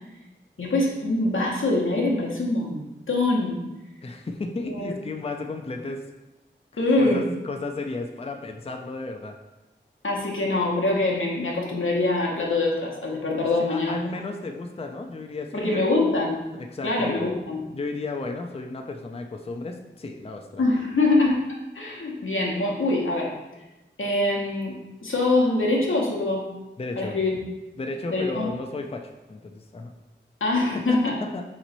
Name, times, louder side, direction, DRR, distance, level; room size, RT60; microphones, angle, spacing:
voice 1, 0.6-2.8 3.1-3.6 4.7-4.9 6.8-7.2 10.0-14.0 15.5-16.4 16.8-17.6 20.6-21.4 21.7-23.3 24.0-24.8 25.0-26.4 27.0-27.4 28.1-28.5 30.4-31.1, left 2 dB, 90° left, -2 dB, 0.9 m, -24 dB
voice 2, 4.0-6.0 7.0-9.3 13.6-15.9 16.5-17.3 17.7-20.6 26.8-27.2 27.8-29.9 30.9-31.0 31.3-31.4, left 3 dB, 30° left, 4 dB, 0.4 m, -33 dB
4.1 x 3.0 x 4.0 m, 1.0 s
wide cardioid pair, 55°, 20 cm